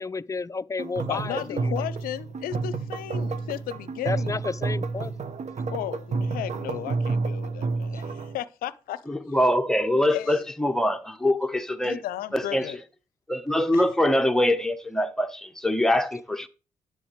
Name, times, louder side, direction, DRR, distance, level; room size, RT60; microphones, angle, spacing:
voice 1, 0.0-1.8 4.0-5.1, left 4 dB, 20° left, 0.4 m, -31 dB
sound 1, 0.8-8.4, right 4 dB, 50° right, 0.9 m, -30 dB
voice 2, 1.1-4.4 5.6-9.0 10.1-10.4 11.8-12.8 13.7-13.9, left 12 dB, 75° left, 0.5 m, -35 dB
voice 3, 9.1-12.0 12.3-12.7 13.3-16.5, left 1 dB, 5° left, 1.1 m, -24 dB
9.9 x 7.5 x 3.3 m
hypercardioid pair, 40°, 15 cm